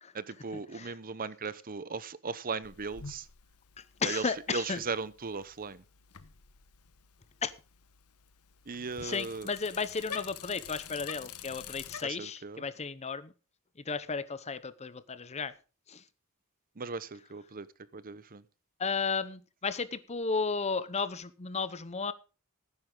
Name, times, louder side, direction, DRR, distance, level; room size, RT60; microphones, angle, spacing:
voice 1, 0.1-3.3 4.0-5.8 8.7-9.5 12.0-12.6 16.8-17.7 17.9-18.4, right 4 dB, 40° right, 17 dB, 0.8 m, -37 dB
Bicycle, 2.6-12.0, left 7 dB, 85° left, 1.2 m, -48 dB
voice 2, 3.8-4.8 7.4-7.5 9.0-13.3 13.8-15.5 15.9-16.0 18.8-22.1, left 5 dB, 30° left, 15 dB, 0.7 m, -34 dB
16.5 x 9.8 x 3.8 m, 0.34 s
head